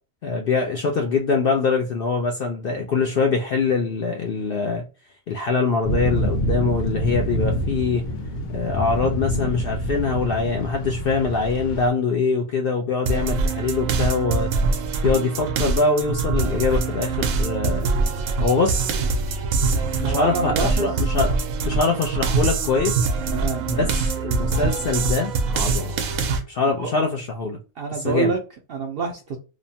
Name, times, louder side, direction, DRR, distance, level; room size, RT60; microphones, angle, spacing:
voice 1, 0.2-4.8 5.3-8.1 8.5-14.5 15.0-18.1 18.4-18.8 20.0-21.3 21.6-23.1 23.7-23.9 24.2-25.9 26.5-27.6 28.0-28.3, left 4 dB, 65° left, 2 dB, 0.5 m, -23 dB
sound 1, 5.8-11.9, equal, 90° left, 1.1 m, -27 dB
sound 2, 13.1-26.4, right 4 dB, 85° right, 1.0 m, -24 dB
voice 2, 20.0-21.1 23.3-23.9 26.7-26.9 27.8-28.4 28.7-29.4, right 4 dB, 65° right, 2 dB, 0.6 m, -26 dB
2.9 x 2.1 x 2.6 m, 0.34 s
omnidirectional pair, 1.4 m